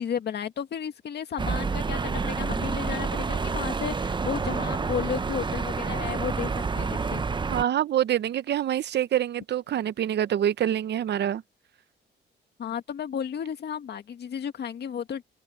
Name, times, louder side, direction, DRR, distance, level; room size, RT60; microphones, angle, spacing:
voice 1, 0.0-7.2 12.6-15.2, left 8 dB, 55° left, 1.9 m, -33 dB
sound 1, 1.4-7.6, right 4 dB, 25° right, 0.7 m, -29 dB
voice 2, 7.5-11.4, right 11 dB, 60° right, 0.8 m, -26 dB
open air
cardioid pair, 90°, 20 cm